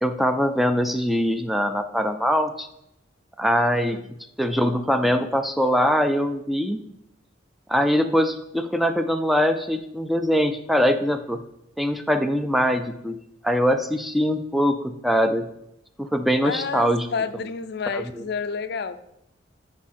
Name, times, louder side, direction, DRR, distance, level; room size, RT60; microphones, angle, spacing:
voice 1, 0.0-2.7 3.4-4.0 4.4-6.8 7.7-11.4 11.8-13.2 13.4-15.4 16.0-17.1 17.9-18.2, equal, ahead, 8 dB, 0.4 m, -22 dB
voice 2, 16.4-18.9, left 5 dB, 60° left, 11 dB, 0.5 m, -30 dB
9.8 x 4.4 x 4.2 m, 0.82 s
head